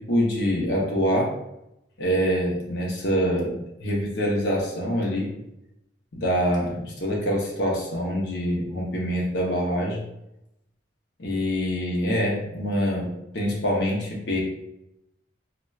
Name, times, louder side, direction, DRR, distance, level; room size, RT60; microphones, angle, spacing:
voice 1, 0.0-1.3 2.0-5.3 6.1-10.0 11.2-14.4, equal, 70° left, -2 dB, 0.7 m, -25 dB
4.1 x 2.2 x 2.3 m, 0.85 s
head